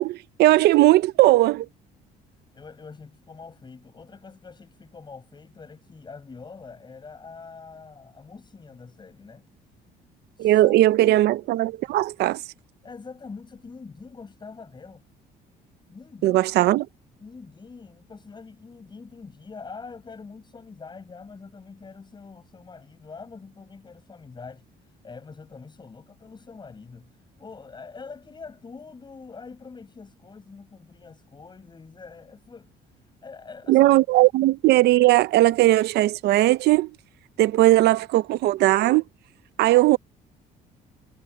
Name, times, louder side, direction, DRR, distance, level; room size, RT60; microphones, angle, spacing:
voice 1, 0.0-1.7 10.4-12.4 16.2-16.8 33.7-36.9 37.4-39.0 39.6-40.0, right 16 dB, 75° right, 0.7 m, -18 dB
voice 2, 2.5-9.5 10.4-11.2 12.8-15.1 15.9-16.5 17.2-32.7 33.0-33.9, left 4 dB, 25° left, 7.5 m, -44 dB
cardioid pair, 110°, 17 cm